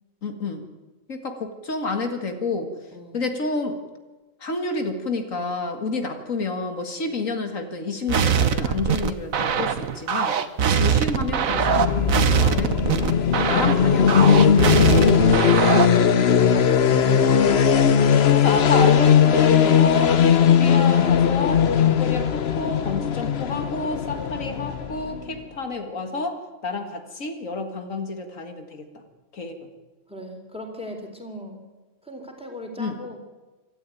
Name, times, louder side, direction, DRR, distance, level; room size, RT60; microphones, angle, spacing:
voice 1, 0.2-0.6 1.1-2.7 3.1-3.8 4.4-10.4 10.7-13.0 13.3-14.1 17.4-17.6 18.3-26.4 26.6-28.9 29.3-29.6 32.8-33.0, left 3 dB, 75° left, 6 dB, 2.3 m, -29 dB
sound 1, 8.1-16.0, right 7 dB, 90° right, 1.5 m, -22 dB
sound 2, 11.4-25.3, left 7 dB, 55° left, 1.1 m, -18 dB
voice 2, 14.7-17.3 17.8-17.9 30.1-31.7 32.0-33.2, equal, 5° right, 4 dB, 3.5 m, -37 dB
25.5 x 13.0 x 9.2 m, 1.2 s
omnidirectional pair, 1.4 m